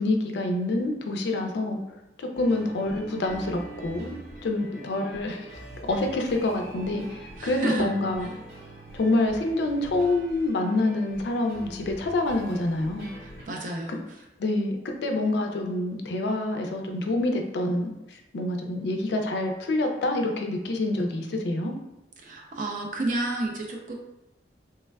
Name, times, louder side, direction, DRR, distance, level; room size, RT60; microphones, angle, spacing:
voice 1, 0.0-1.8 2.2-4.2 4.4-5.5 5.8-8.3 8.9-13.1 14.4-17.9 18.3-21.7, left 2 dB, 70° left, 3 dB, 0.4 m, -27 dB
sound 1, 2.3-13.4, right 1 dB, 85° right, 1.0 m, -44 dB
voice 2, 7.4-7.9 13.2-14.0 22.2-23.9, right 2 dB, 45° right, 1 dB, 0.4 m, -30 dB
3.2 x 2.2 x 2.2 m, 0.92 s
head